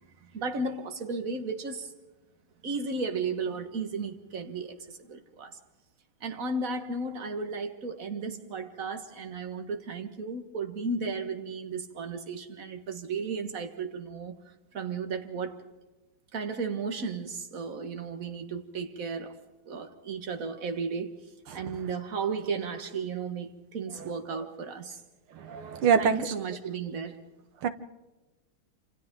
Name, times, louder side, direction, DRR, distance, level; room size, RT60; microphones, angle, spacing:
voice 1, 0.2-1.9 2.6-5.6 6.2-14.4 14.7-15.6 16.3-21.1 21.5-25.0 26.0-27.2, right 4 dB, 40° right, 1.9 m, -34 dB
voice 2, 25.4-26.3 27.6-27.7, right 7 dB, 85° right, 2.1 m, -24 dB
27.5 x 27.0 x 3.8 m
omnidirectional pair, 2.3 m